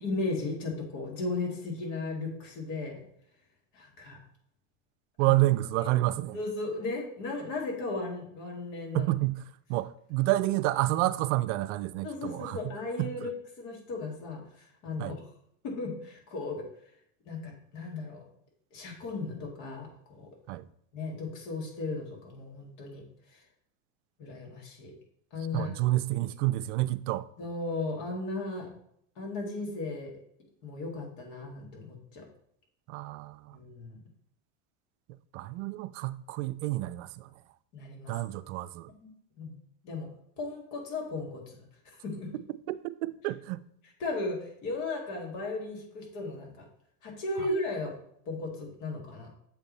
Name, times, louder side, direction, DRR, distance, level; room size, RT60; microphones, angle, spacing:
voice 1, 0.0-3.0 3.7-4.2 5.2-5.3 6.3-9.1 12.0-15.2 15.6-16.6 17.3-18.2 18.7-20.3 20.9-23.0 23.3-23.4 24.2-24.9 25.3-25.7 27.4-28.7 29.2-30.1 30.6-32.2 33.5-34.0 37.7-38.1 39.0-39.1 39.4-39.5 39.8-40.1 40.4-42.3 44.0-46.6 47.0-47.9 48.3-49.3, left 3 dB, 50° left, 2.4 m, -36 dB
voice 2, 5.2-6.4 8.9-9.4 9.7-12.7 13.0-13.3 15.0-15.2 20.5-20.7 25.5-27.3 32.9-33.6 35.3-37.3 38.1-38.9 42.7-43.6 47.4-47.5, right 17 dB, 65° right, 0.5 m, -29 dB
7.5 x 3.5 x 4.0 m
supercardioid pair, 110°, 38 cm